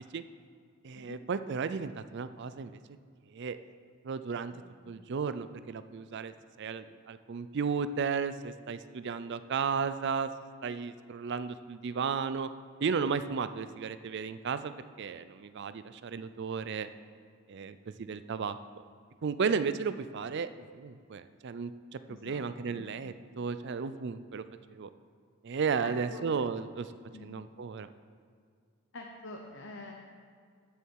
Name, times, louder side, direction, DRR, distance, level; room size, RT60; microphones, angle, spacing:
voice 1, 0.8-2.7 3.3-3.6 4.0-4.5 4.9-10.3 10.6-12.5 12.8-14.7 15.0-16.9 17.5-18.8 19.2-20.5 20.7-24.4 24.7-24.9 25.4-26.9 27.2-27.9, right 5 dB, 50° right, 12 dB, 0.4 m, -34 dB
voice 2, 4.5-4.9 22.1-22.4 22.7-22.9 25.8-26.2 27.1-27.5 28.9-29.9, left 2 dB, 55° left, 1 dB, 0.9 m, -46 dB
13.5 x 6.8 x 4.7 m, 2.1 s
head